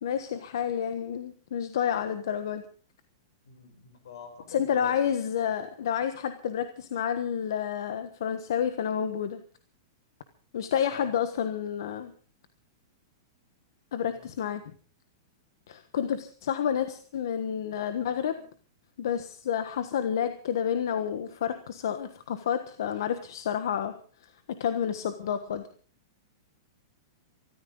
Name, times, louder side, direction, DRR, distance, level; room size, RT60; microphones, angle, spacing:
voice 1, 0.0-2.6 4.5-9.4 10.5-12.1 13.9-14.6 15.7-18.4 19.0-24.0 24.6-25.6, left 8 dB, 65° left, 10 dB, 1.3 m, -29 dB
voice 2, 3.4-5.1 10.9-11.1 14.0-14.3, left 5 dB, 85° left, 5 dB, 7.4 m, -46 dB
24.0 x 14.0 x 3.9 m, 0.40 s
supercardioid pair, 180°, 2 cm